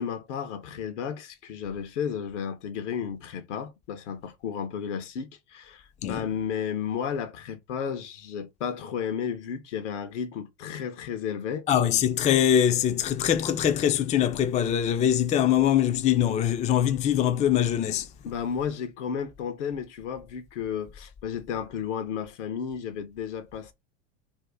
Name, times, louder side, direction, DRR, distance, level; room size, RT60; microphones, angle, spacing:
voice 1, 0.0-11.7 18.2-23.7, left 7 dB, 80° left, 0.9 m, -33 dB
voice 2, 11.7-18.1, left 10 dB, 20° left, 0.4 m, -23 dB
2.7 x 2.4 x 3.4 m
hypercardioid pair, 95°, 36 cm